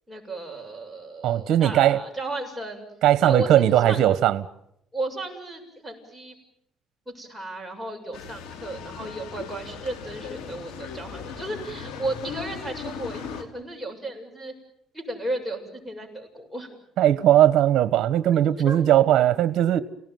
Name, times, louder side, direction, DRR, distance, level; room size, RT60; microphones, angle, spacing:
voice 1, 0.1-2.9 3.2-4.0 4.9-6.3 7.1-14.5 14.9-16.7 18.7-18.8, right 2 dB, ahead, 7.3 m, -34 dB
voice 2, 1.2-2.0 3.0-4.4 17.0-19.8, right 12 dB, 65° right, 1.3 m, -19 dB
sound 1, 8.1-13.4, left 6 dB, 85° left, 3.0 m, -38 dB
29.0 x 18.5 x 9.4 m
cardioid pair, 105°, 0 cm